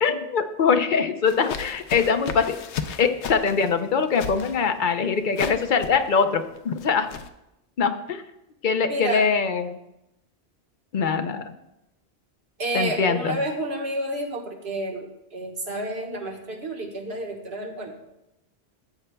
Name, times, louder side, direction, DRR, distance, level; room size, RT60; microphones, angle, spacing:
voice 1, 0.0-2.6 3.0-7.1 7.8-8.2 8.6-9.8 10.9-11.4 12.7-13.4, left 5 dB, 55° left, 7 dB, 0.7 m, -23 dB
sound 1, 1.3-7.3, left 6 dB, 85° left, 0.9 m, -35 dB
voice 2, 8.9-9.3 12.6-17.9, right 1 dB, 70° right, 0 dB, 1.6 m, -30 dB
14.0 x 8.0 x 2.2 m, 0.88 s
omnidirectional pair, 1.1 m